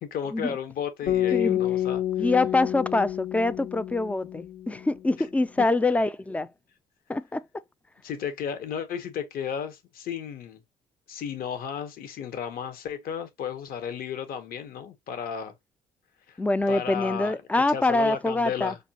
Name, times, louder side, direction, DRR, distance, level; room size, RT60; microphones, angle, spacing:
voice 1, 0.0-2.0 5.6-5.7 8.0-10.6 11.1-15.5 16.3-16.4 16.7-18.8, left 8 dB, 60° left, 0.9 m, -34 dB
sound 1, 1.1-5.3, left 12 dB, 85° left, 1.7 m, -29 dB
voice 2, 2.2-6.5 7.1-7.4 16.4-18.7, left 2 dB, 10° left, 0.3 m, -25 dB
5.1 x 2.3 x 2.8 m
cardioid pair, 110°, 17 cm